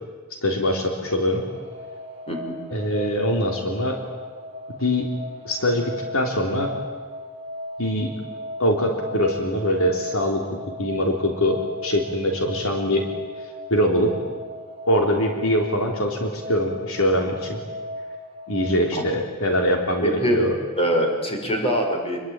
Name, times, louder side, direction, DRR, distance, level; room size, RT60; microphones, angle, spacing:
voice 1, 0.4-1.4 2.7-4.0 4.8-5.1 5.4-6.7 7.8-8.1 8.6-10.4 10.8-13.1 13.7-14.1 14.9-17.6 18.5-20.6, equal, 65° left, 2 dB, 3.6 m, -23 dB
sound 1, 1.0-18.9, left 1 dB, 30° right, 3.6 m, -37 dB
voice 2, 20.0-20.4 20.8-22.2, right 1 dB, 25° left, 2 dB, 5.7 m, -23 dB
28.0 x 22.5 x 9.0 m, 1.4 s
head